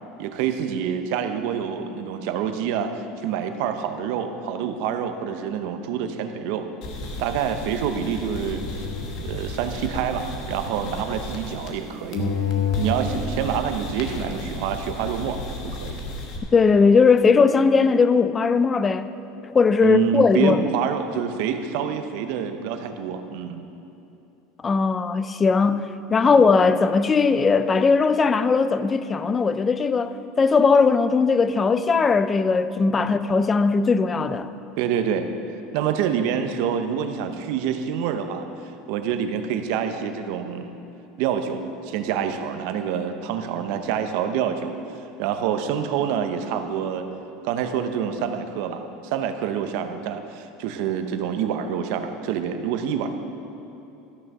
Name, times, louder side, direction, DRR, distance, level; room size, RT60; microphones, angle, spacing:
voice 1, 0.2-6.6 7.2-8.6 9.2-12.3 12.8-15.4 15.6-16.0 19.8-23.6 26.2-26.5 33.0-33.1 34.8-35.3 35.7-40.7 41.2-47.1 47.4-53.1, right 8 dB, 65° right, 0.8 m, -27 dB
sound 1, 6.8-11.9 12.1-16.4, left 3 dB, 50° left, 1.5 m, -31 dB
voice 2, 16.5-19.1 19.4-20.6 24.6-34.5, left 4 dB, 15° left, 0.4 m, -19 dB
13.0 x 6.4 x 6.0 m
cardioid pair, 160°, 0 cm